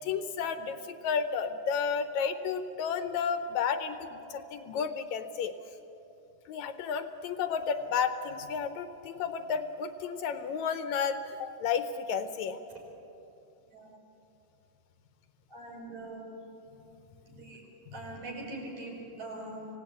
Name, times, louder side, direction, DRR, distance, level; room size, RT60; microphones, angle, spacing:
voice 1, 0.0-5.5 6.5-12.6, left 6 dB, 75° left, 9 dB, 2.0 m, -32 dB
voice 2, 15.5-16.3 17.3-17.6 17.9-19.7, right 2 dB, 65° right, -1 dB, 6.0 m, -42 dB
25.5 x 17.5 x 8.4 m, 2.9 s
omnidirectional pair, 3.6 m